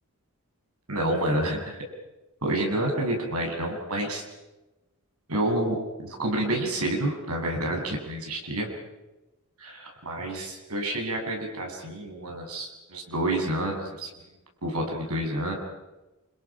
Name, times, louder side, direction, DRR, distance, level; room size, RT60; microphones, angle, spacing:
voice 1, 0.9-1.8 2.4-4.2 5.3-8.7 9.6-14.1 14.6-15.5, right 1 dB, 80° right, 2 dB, 6.8 m, -29 dB
28.5 x 28.0 x 5.9 m, 1.0 s
head